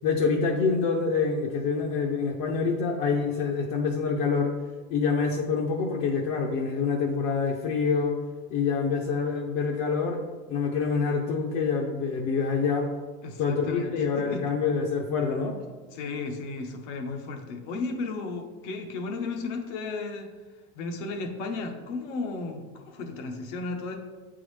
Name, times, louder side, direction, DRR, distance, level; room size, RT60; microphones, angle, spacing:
voice 1, 0.0-4.5 4.9-8.2 8.5-12.9 13.4-15.6, left 5 dB, 50° left, 1 dB, 0.7 m, -26 dB
voice 2, 13.2-14.4 15.9-20.3 20.7-23.9, left 3 dB, 80° left, 3 dB, 1.0 m, -34 dB
7.8 x 3.8 x 3.2 m, 1.3 s
cardioid pair, 175°, 35 cm